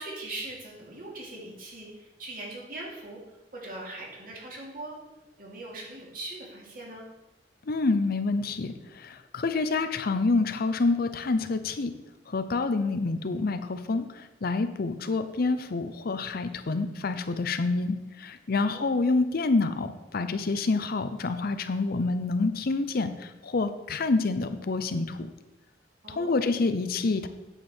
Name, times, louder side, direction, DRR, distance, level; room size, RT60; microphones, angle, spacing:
voice 1, 0.0-5.0 5.4-7.1 12.8-13.0 18.6-19.1 26.0-26.5, right 2 dB, 50° right, -3 dB, 2.7 m, -41 dB
voice 2, 7.7-11.9 12.3-25.3 26.1-27.3, left 3 dB, 55° left, 10 dB, 0.6 m, -27 dB
9.2 x 7.4 x 4.4 m, 1.0 s
head